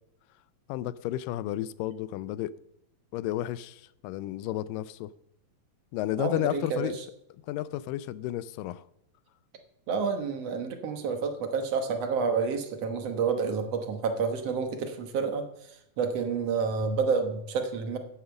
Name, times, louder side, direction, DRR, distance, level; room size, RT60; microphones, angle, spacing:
voice 1, 0.7-2.5 3.1-5.1 5.9-7.0 7.5-8.8, left 13 dB, 90° left, 2.2 m, -32 dB
voice 2, 6.2-6.9 9.9-15.5 16.0-18.0, right 5 dB, 60° right, 1.9 m, -29 dB
9.6 x 8.7 x 7.0 m
omnidirectional pair, 3.8 m